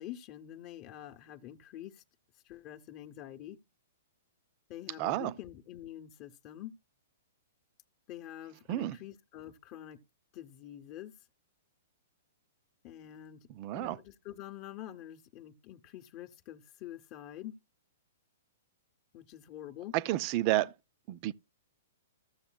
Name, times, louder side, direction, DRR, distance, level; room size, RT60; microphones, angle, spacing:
voice 1, 0.0-2.0 2.4-3.6 4.7-6.7 8.1-10.0 10.3-11.1 12.8-13.5 13.7-17.6 19.1-19.9, left 12 dB, 40° left, 0.8 m, -46 dB
voice 2, 5.0-5.3 8.7-9.0 13.6-14.0 19.9-20.7 21.1-21.3, right 16 dB, 40° right, 0.4 m, -30 dB
14.5 x 6.9 x 2.2 m
hypercardioid pair, 130°, 0 cm